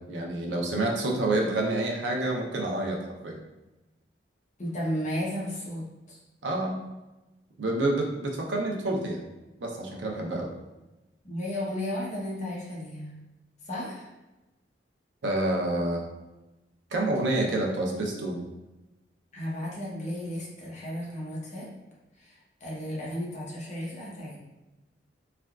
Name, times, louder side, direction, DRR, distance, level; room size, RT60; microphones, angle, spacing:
voice 1, 0.1-3.0 3.2-3.4 6.4-6.8 7.6-9.3 9.6-10.5 15.2-16.0 16.9-18.4, right 2 dB, 85° right, 0 dB, 0.5 m, -28 dB
voice 2, 4.6-6.2 11.2-13.1 13.7-14.1 19.3-21.7 22.6-24.4, left 1 dB, 40° left, -5 dB, 0.8 m, -34 dB
3.3 x 2.3 x 2.3 m, 1.0 s
head